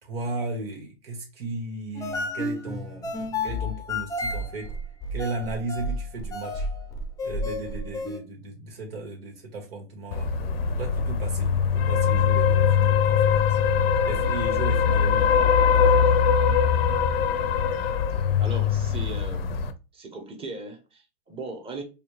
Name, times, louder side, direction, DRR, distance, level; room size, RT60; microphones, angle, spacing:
voice 1, 0.0-4.7 5.1-6.7 7.2-10.3 10.7-13.6 14.0-15.4, right 2 dB, 80° right, 1.6 m, -35 dB
sound 1, 2.0-8.2, left 1 dB, 10° left, 0.6 m, -31 dB
sound 2, 10.1-19.7, left 7 dB, 80° left, 0.7 m, -22 dB
voice 2, 18.4-19.6 19.9-21.8, right 2 dB, 20° right, 0.9 m, -38 dB
4.1 x 2.3 x 3.2 m
hypercardioid pair, 130°, 29 cm